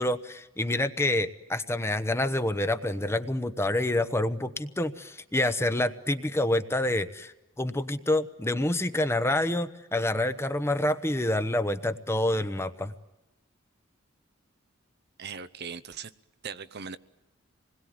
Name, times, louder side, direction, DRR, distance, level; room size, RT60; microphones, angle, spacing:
voice 1, 0.0-7.3 7.6-12.9, left 1 dB, 15° left, 11 dB, 1.0 m, -27 dB
voice 2, 15.2-16.1 16.4-17.0, right 6 dB, 55° right, 13 dB, 0.8 m, -39 dB
27.5 x 21.0 x 9.5 m, 1.0 s
head